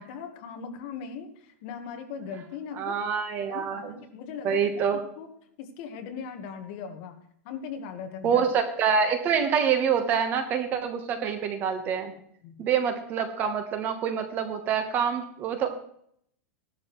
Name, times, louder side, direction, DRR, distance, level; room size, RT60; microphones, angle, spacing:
voice 1, 0.0-3.0 3.5-5.3 5.6-7.2 7.4-8.4 12.4-12.6, left 6 dB, 40° left, 6 dB, 1.3 m, -39 dB
voice 2, 2.8-3.9 4.4-5.0 8.2-12.1 12.6-15.7, right 7 dB, 25° right, 8 dB, 1.0 m, -26 dB
15.0 x 12.0 x 3.1 m, 0.67 s
supercardioid pair, 170°, 8 cm